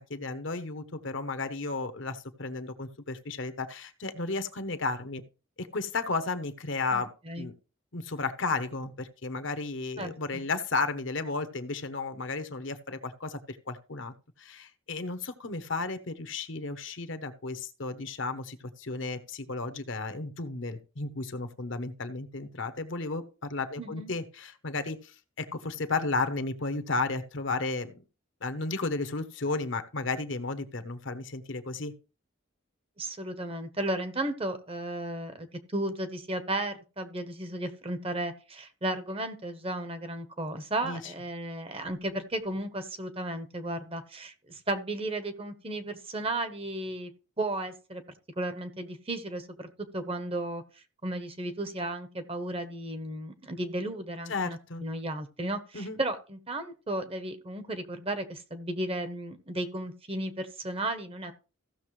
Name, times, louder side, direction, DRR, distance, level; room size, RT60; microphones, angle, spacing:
voice 1, 0.1-5.2 5.6-7.1 7.4-7.5 7.9-14.1 14.4-27.9 28.4-31.9 40.8-41.0 54.3-54.8 55.7-56.0, left 3 dB, 65° left, 9 dB, 1.0 m, -33 dB
voice 2, 6.9-7.5 10.0-10.4 23.8-24.2 33.0-35.5 35.7-47.1 47.4-48.0 48.4-50.6 51.0-61.3, right 1 dB, 25° right, 10 dB, 1.0 m, -34 dB
15.5 x 6.5 x 3.2 m, 0.33 s
head